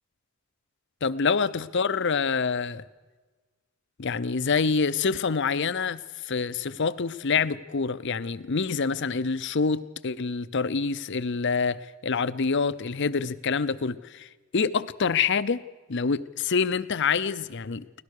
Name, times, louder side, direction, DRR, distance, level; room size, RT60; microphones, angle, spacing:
voice 1, 1.0-2.8 4.0-15.6 15.9-17.8, left 5 dB, 50° left, 15 dB, 0.6 m, -26 dB
24.0 x 17.5 x 6.6 m, 1.3 s
head